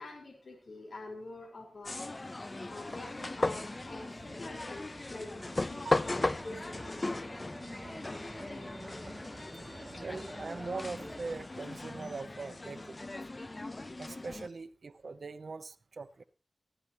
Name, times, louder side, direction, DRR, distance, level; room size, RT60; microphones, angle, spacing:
voice 1, 0.0-2.0 2.7-7.0 8.1-8.2 9.9-10.0, left 2 dB, 65° left, 1 dB, 5.0 m, -47 dB
sound 1, 1.8-14.5, left 2 dB, 40° left, 0.8 m, -37 dB
sound 2, 2.7-11.5, right 2 dB, 50° right, 2.3 m, -51 dB
voice 2, 10.0-13.0 14.0-16.2, right 4 dB, 70° right, 10 dB, 0.9 m, -41 dB
19.0 x 16.0 x 3.1 m, 0.35 s
cardioid pair, 45°, 0 cm